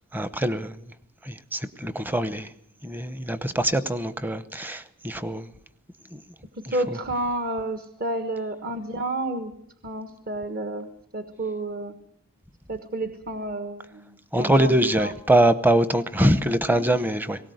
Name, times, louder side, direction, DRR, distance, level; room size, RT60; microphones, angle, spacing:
voice 1, 0.1-0.8 1.2-2.5 2.8-5.5 6.1-6.2 14.3-17.4, right 1 dB, 10° right, 0.8 m, -23 dB
voice 2, 6.6-9.5 9.8-10.9 11.1-11.9 12.7-15.1 16.2-16.3, right 1 dB, 45° right, 1.4 m, -30 dB
19.5 x 18.0 x 8.0 m
head